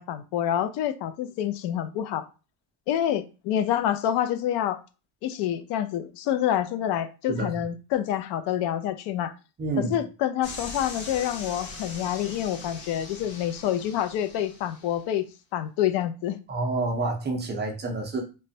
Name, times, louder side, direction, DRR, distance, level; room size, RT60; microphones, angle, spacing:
voice 1, 0.0-2.2 2.9-4.8 5.2-9.3 9.8-15.3 15.5-16.4, left 11 dB, 85° left, 11 dB, 0.5 m, -27 dB
voice 2, 9.6-10.0 16.5-18.2, right 3 dB, 25° right, 3 dB, 0.4 m, -28 dB
sound 1, 10.4-15.0, left 3 dB, 65° left, 1.0 m, -41 dB
3.0 x 2.2 x 2.6 m, 0.32 s
cardioid pair, 165°, 40 cm